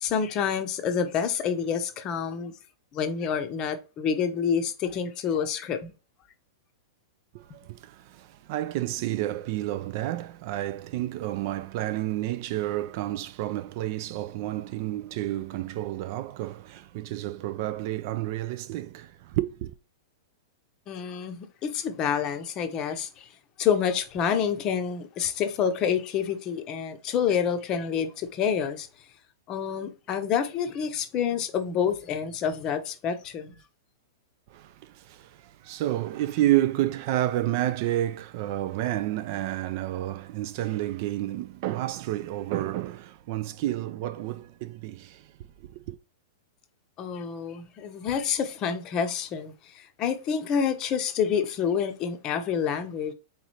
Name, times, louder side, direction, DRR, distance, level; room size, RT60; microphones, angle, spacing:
voice 1, 0.0-2.5 2.9-5.9 20.9-23.3 23.6-28.9 29.5-33.6 47.0-53.1, left 7 dB, 30° left, 0.7 m, -28 dB
voice 2, 7.3-19.7 34.5-45.3 45.7-45.9, right 14 dB, 45° right, 0.3 m, -30 dB
3.9 x 3.1 x 4.1 m
hypercardioid pair, 150°, 2 cm